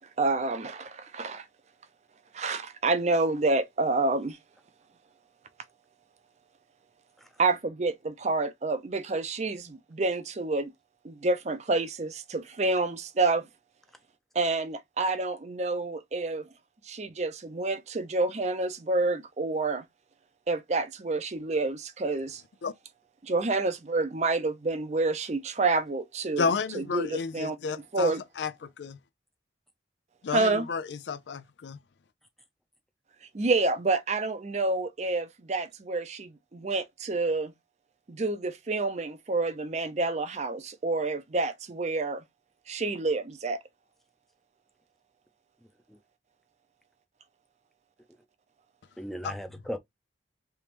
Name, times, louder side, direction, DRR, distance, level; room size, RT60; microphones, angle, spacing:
voice 1, 0.2-1.4 2.3-4.4 7.4-10.7 11.0-13.5 14.3-16.5 16.9-19.9 20.5-22.4 23.2-26.5 26.7-27.6 27.9-28.2 30.3-30.7 33.3-37.5 38.1-42.2 42.7-43.6, right 3 dB, 40° right, 0.5 m, -28 dB
voice 2, 26.4-29.0 30.2-31.8 49.2-49.3, left 5 dB, 85° left, 0.4 m, -32 dB
voice 3, 45.6-46.0 49.0-49.8, equal, ahead, 0.6 m, -38 dB
3.4 x 3.1 x 2.9 m
head